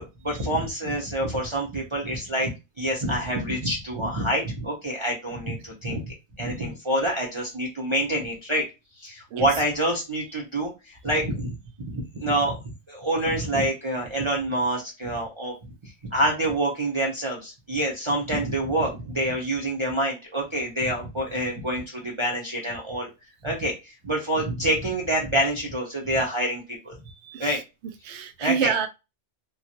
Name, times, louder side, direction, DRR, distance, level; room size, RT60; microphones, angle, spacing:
voice 1, 0.0-2.5 2.8-6.0 6.4-8.6 9.0-12.6 12.9-15.5 15.8-23.1 23.4-27.0 27.4-27.6 28.4-28.7, right 1 dB, 30° right, 0.7 m, -27 dB
voice 2, 27.1-27.6 28.0-28.9, right 7 dB, 75° right, 0.9 m, -28 dB
3.0 x 2.3 x 2.8 m
omnidirectional pair, 1.2 m